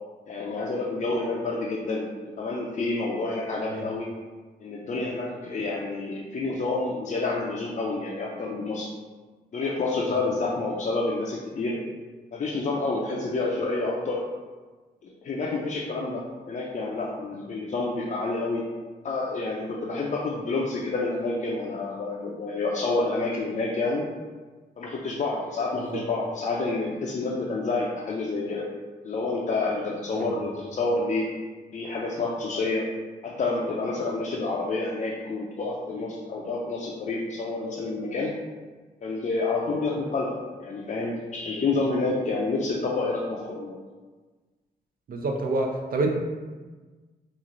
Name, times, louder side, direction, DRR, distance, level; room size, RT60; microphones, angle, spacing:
voice 1, 0.3-2.1 2.4-4.1 4.6-8.9 9.5-11.8 12.3-14.2 15.0-18.6 19.0-24.1 24.8-28.7 29.0-31.3 31.7-32.8 33.2-38.3 39.0-40.3 40.6-43.8, left 3 dB, 45° left, -4 dB, 0.5 m, -28 dB
voice 2, 45.1-46.1, right 2 dB, 55° right, 2 dB, 0.6 m, -27 dB
3.0 x 2.4 x 3.7 m, 1.3 s
cardioid pair, 90°, 17 cm